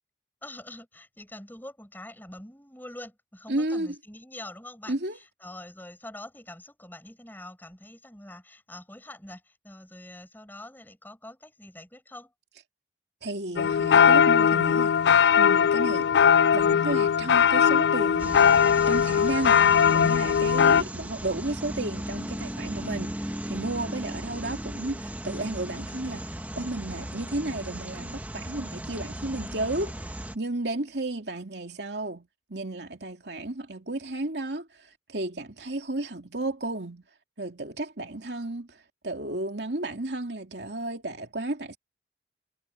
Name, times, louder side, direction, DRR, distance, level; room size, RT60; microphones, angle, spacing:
voice 1, 0.4-12.3, left 1 dB, 10° left, 7.9 m, -45 dB
voice 2, 3.5-3.9 4.9-5.2 13.2-14.9 15.4-16.1 16.5-18.4 18.7-34.7 35.1-37.0 37.4-38.8 39.0-41.8, right 2 dB, 75° right, 2.7 m, -33 dB
sound 1, 13.6-20.8, left 7 dB, 75° left, 0.3 m, -20 dB
sound 2, 18.2-30.3, right 1 dB, 10° right, 1.2 m, -36 dB
head